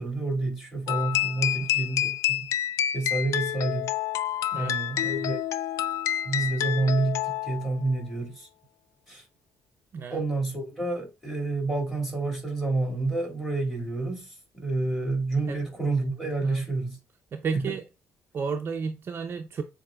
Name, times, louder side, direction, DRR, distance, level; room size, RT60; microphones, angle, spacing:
voice 1, 0.0-2.5 2.9-3.9 4.5-5.4 6.2-8.5 9.1-9.2 10.1-17.0 17.5-17.7, right 3 dB, 5° left, 2.3 m, -29 dB
sound 1, 0.9-7.7, left 12 dB, 75° left, 0.3 m, -28 dB
voice 2, 17.3-17.8 18.3-19.6, right 5 dB, 45° right, 0.5 m, -32 dB
7.5 x 2.6 x 2.3 m
cardioid pair, 115°, 5 cm